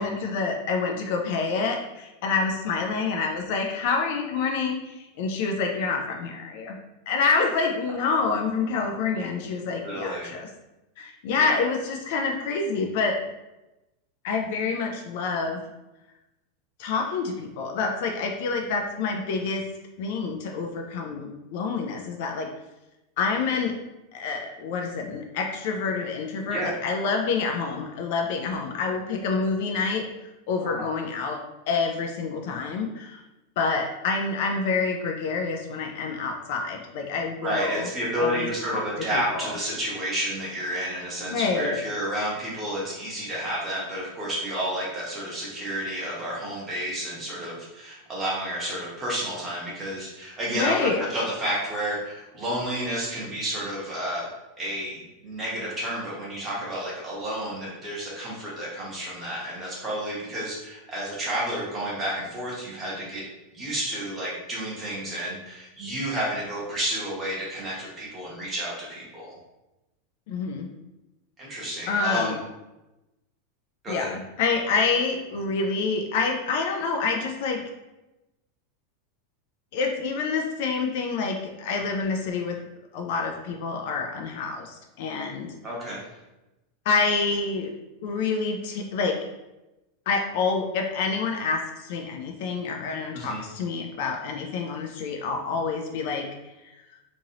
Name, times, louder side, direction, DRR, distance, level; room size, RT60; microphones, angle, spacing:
voice 1, 0.0-6.8 7.1-10.5 11.0-13.2 14.2-15.6 16.8-19.6 20.0-22.5 23.2-23.7 24.1-30.1 30.5-31.4 31.7-33.2 33.6-37.9 38.2-38.8 39.1-39.5 41.3-41.8 50.5-51.0 70.3-70.7 71.9-72.4 73.9-77.6 79.7-82.6 82.9-85.5 86.9-87.7 88.0-89.2 90.1-96.3 96.6-96.7, left 4 dB, 55° left, 3 dB, 0.3 m, -27 dB
voice 2, 9.8-10.3 11.3-11.6 26.5-26.7 30.6-30.9 37.4-54.3 54.6-63.3 63.5-69.3 71.4-72.3 73.8-74.1 85.6-86.0 93.1-93.4, equal, 15° right, -6 dB, 0.9 m, -31 dB
2.9 x 2.6 x 2.8 m, 0.99 s
supercardioid pair, 170°, 0 cm